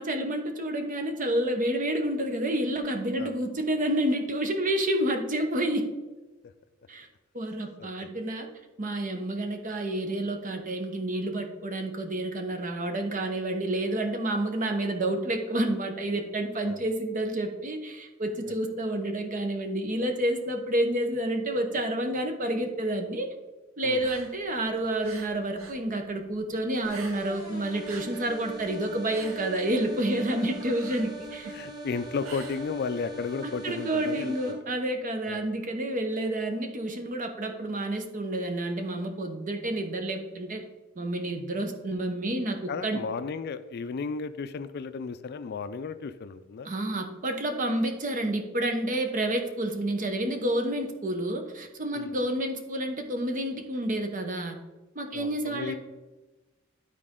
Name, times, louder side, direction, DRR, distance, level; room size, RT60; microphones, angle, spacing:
voice 1, 0.0-5.9 6.9-7.1 7.3-8.5 8.8-23.3 23.8-31.5 33.4-40.6 41.0-43.0 46.6-54.6 54.9-55.8, right 1 dB, 40° right, 5 dB, 0.9 m, -29 dB
voice 2, 7.8-8.1 16.6-16.8 18.5-18.6 23.8-24.0 31.5-34.6 35.2-35.4 42.7-46.7 51.9-52.1 55.1-55.8, left 5 dB, 50° left, 12 dB, 0.4 m, -34 dB
sound 1, 23.9-25.8 26.1-27.5 27.7-33.2, right 3 dB, 85° right, 0.9 m, -46 dB
sound 2, 26.8-34.5, right 1 dB, 20° right, 2.4 m, -41 dB
12.0 x 4.2 x 3.7 m, 1.2 s
head